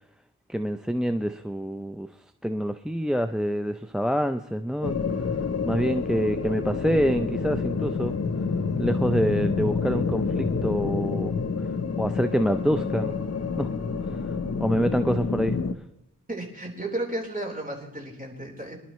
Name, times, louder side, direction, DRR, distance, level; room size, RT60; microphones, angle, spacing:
voice 1, 0.5-2.1 2.4-4.9 5.7-8.1 8.8-11.3 12.0-13.1 13.6-13.7 14.6-15.5, equal, ahead, 9 dB, 0.5 m, -26 dB
sound 1, 4.8-15.7, left 4 dB, 45° left, 0.9 m, -28 dB
voice 2, 16.3-18.8, right 1 dB, 25° right, -1 dB, 4.2 m, -33 dB
25.5 x 11.5 x 3.2 m, 0.86 s
wide cardioid pair, 75°, 34 cm